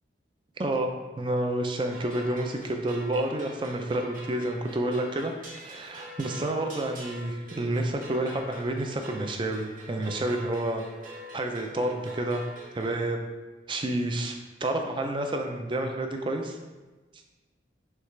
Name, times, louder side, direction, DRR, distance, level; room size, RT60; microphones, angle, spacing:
voice 1, 0.6-5.3 5.6-10.8 11.3-12.4 12.7-13.2 13.7-14.4 14.6-16.6, right 1 dB, 25° right, 4 dB, 0.4 m, -29 dB
sound 1, 1.9-13.0, equal, 45° right, 0.9 m, -44 dB
6.4 x 2.4 x 3.2 m, 1.2 s
head